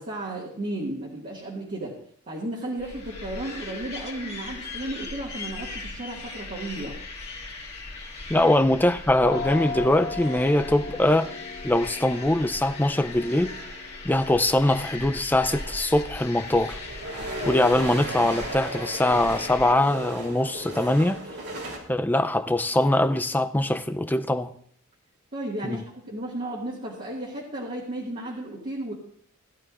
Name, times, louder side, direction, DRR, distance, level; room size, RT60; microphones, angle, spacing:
voice 1, 0.0-2.0 2.3-7.0 8.3-8.5 25.3-28.9, right 1 dB, 40° right, 1.9 m, -34 dB
sound 1, 2.8-19.7, left 3 dB, 30° left, 2.1 m, -39 dB
voice 2, 8.3-11.3 11.6-13.5 14.0-16.8 17.5-21.2 21.9-24.5 25.6-25.8, left 1 dB, 10° left, 0.4 m, -22 dB
sound 2, 9.2-20.7, left 4 dB, 65° left, 1.4 m, -40 dB
sound 3, 11.7-13.9 14.9-15.0 15.3-21.8, right 1 dB, 90° right, 3.2 m, -37 dB
16.5 x 11.5 x 2.5 m
head